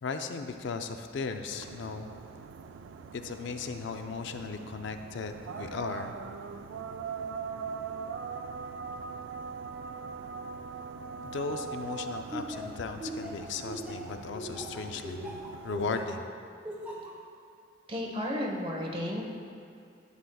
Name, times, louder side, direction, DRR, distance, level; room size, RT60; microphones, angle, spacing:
voice 1, 0.0-2.1 3.1-6.2 11.2-16.2, left 4 dB, 65° left, 7 dB, 0.4 m, -36 dB
sound 1, 1.5-16.0, right 5 dB, 80° right, 0.3 m, -41 dB
Laughter, 12.3-16.2 16.6-17.1, right 1 dB, 10° right, 1.2 m, -39 dB
voice 2, 17.9-19.2, left 1 dB, 30° right, -1 dB, 1.1 m, -33 dB
11.5 x 7.7 x 2.3 m, 2.5 s
head